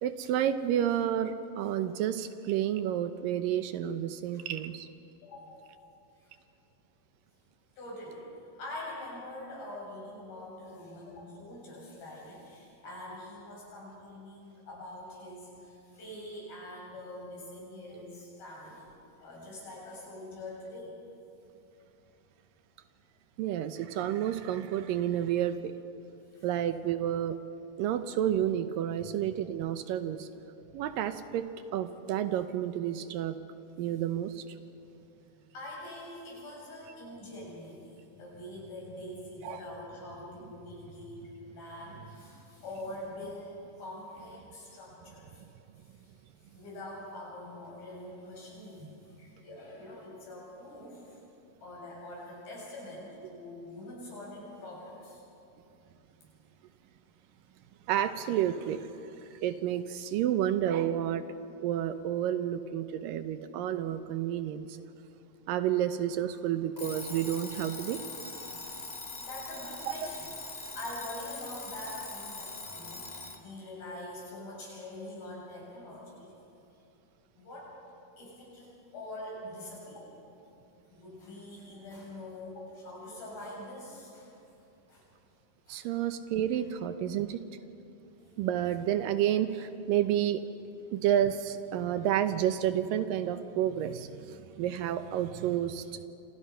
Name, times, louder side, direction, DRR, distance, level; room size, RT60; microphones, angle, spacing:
voice 1, 0.0-4.9 23.4-25.7 26.4-27.4 27.8-30.3 30.7-33.4 33.8-34.4 39.4-39.6 57.9-58.9 59.3-61.2 61.6-64.7 65.5-68.0 85.7-87.5 88.4-90.4 90.9-96.1, right 10 dB, 75° right, 10 dB, 2.4 m, -30 dB
voice 2, 5.2-5.7 6.2-6.3 7.8-8.3 8.6-18.9 19.1-21.0 26.2-26.5 29.0-29.1 35.5-45.4 46.0-46.1 46.4-51.2 51.6-55.2 66.2-66.3 69.1-70.3 70.5-76.3 76.7-76.8 77.4-77.7 78.2-80.1 80.9-84.3 84.9-85.0 85.7-85.8 86.5-86.6 88.2-88.3, left 1 dB, 75° left, -4 dB, 9.4 m, -44 dB
Alarm, 66.8-73.5, left 3 dB, 35° left, 0.6 m, -42 dB
28.0 x 28.0 x 5.7 m, 2.7 s
omnidirectional pair, 4.2 m